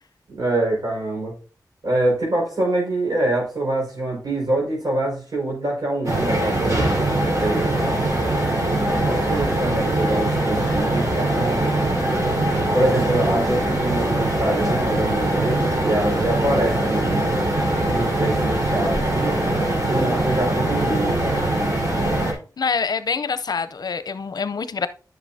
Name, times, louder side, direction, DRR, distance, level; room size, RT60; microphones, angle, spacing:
voice 1, 0.3-1.3 1.8-7.9 8.8-11.7 12.7-17.3 17.9-19.4 19.8-21.4, right 1 dB, 70° right, 5.2 m, -25 dB
sound 1, 6.0-22.3, right 1 dB, 50° right, 4.5 m, -22 dB
voice 2, 22.6-24.9, left 5 dB, 70° left, 0.6 m, -25 dB
10.5 x 6.8 x 2.8 m
wide cardioid pair, 65°, 7 cm